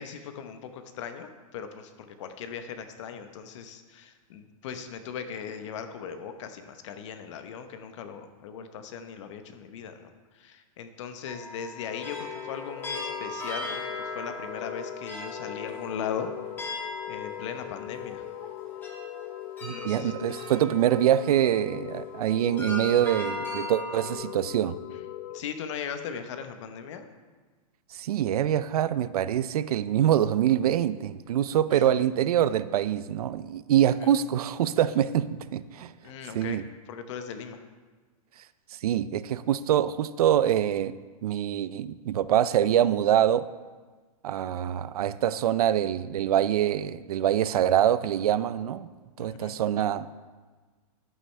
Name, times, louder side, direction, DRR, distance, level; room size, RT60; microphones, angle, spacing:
voice 1, 0.0-16.3 17.1-18.2 19.7-20.1 25.3-27.1 31.7-31.8 36.0-37.6 49.2-49.5, left 7 dB, 50° left, 8 dB, 0.9 m, -38 dB
sound 1, 11.3-21.8 22.6-24.1, left 1 dB, 10° left, 1.6 m, -39 dB
sound 2, 11.9-25.4, left 13 dB, 25° left, 0.4 m, -40 dB
voice 2, 19.6-24.8 27.9-35.9 36.3-36.6 38.8-40.9 41.2-43.5 44.2-48.9 49.2-50.1, right 11 dB, 75° right, 16 dB, 0.4 m, -25 dB
11.0 x 8.8 x 3.3 m, 1.4 s
hypercardioid pair, 155°, 19 cm